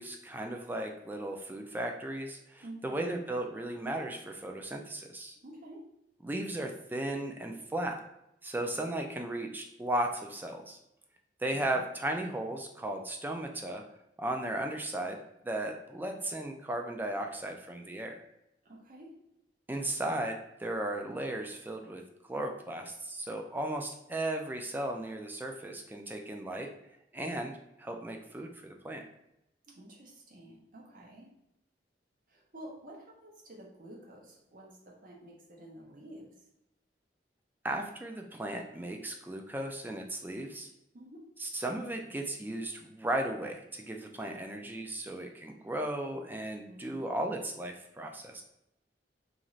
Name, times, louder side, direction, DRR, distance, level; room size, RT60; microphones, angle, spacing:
voice 1, 0.0-5.4 6.2-7.9 8.4-10.8 11.4-13.8 14.2-15.2 15.4-18.2 19.7-22.0 22.3-26.7 27.1-27.5 27.8-29.0 37.6-40.7 41.4-48.4, right 1 dB, 10° right, 3 dB, 0.3 m, -36 dB
voice 2, 2.6-3.2 5.4-5.8 11.5-11.9 18.6-19.1 29.7-31.3 32.3-36.4 40.9-41.3 46.7-47.2, right 1 dB, 50° right, -2 dB, 0.7 m, -50 dB
2.5 x 2.4 x 3.0 m, 0.83 s
head